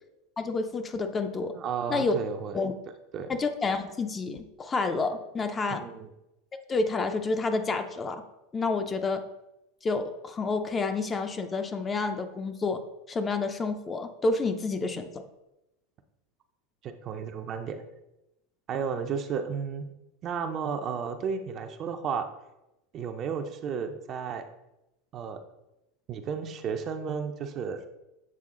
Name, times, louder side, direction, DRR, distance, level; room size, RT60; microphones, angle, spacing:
voice 1, 0.4-1.5 1.9-2.1 2.5-2.7 3.3-5.8 6.7-8.2 8.5-9.2 9.8-12.8 13.1-15.2, left 3 dB, 20° left, 7 dB, 0.5 m, -29 dB
voice 2, 1.5-2.6 3.1-3.3 5.7-6.1 16.8-17.8 18.7-19.9 20.2-22.3 22.9-24.4 25.1-25.4 26.1-27.9, right 6 dB, 40° right, 7 dB, 0.5 m, -33 dB
7.6 x 3.5 x 3.7 m, 0.92 s
supercardioid pair, 125°, 0 cm